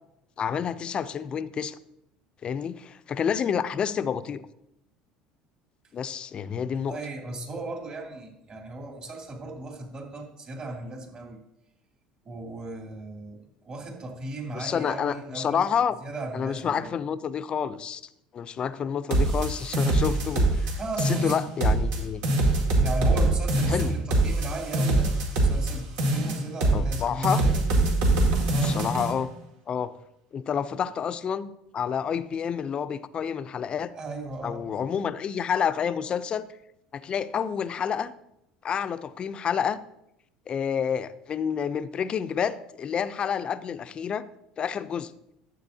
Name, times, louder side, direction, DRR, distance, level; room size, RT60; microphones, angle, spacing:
voice 1, 0.4-1.8 2.4-4.4 5.9-7.0 14.5-16.0 16.3-18.0 18.3-20.7 21.0-22.2 23.7-23.9 26.7-27.4 28.6-29.3 29.7-29.9 30.3-33.9 34.4-36.5 36.9-38.1 38.6-39.8 40.5-44.2 44.6-45.1, left 7 dB, 40° left, 14 dB, 0.5 m, -29 dB
voice 2, 6.7-11.4 12.2-13.4 13.6-15.6 16.0-16.9 20.7-21.4 22.8-25.1 25.4-27.7 28.4-28.8 33.9-34.6, right 2 dB, 40° right, 0 dB, 2.7 m, -36 dB
sound 1, 19.1-20.7 21.0-22.0 22.2-25.7 26.0-27.0 27.2-29.1, right 2 dB, 75° right, 2.3 m, -23 dB
12.0 x 7.8 x 2.8 m, 0.83 s
supercardioid pair, 85°, 3 cm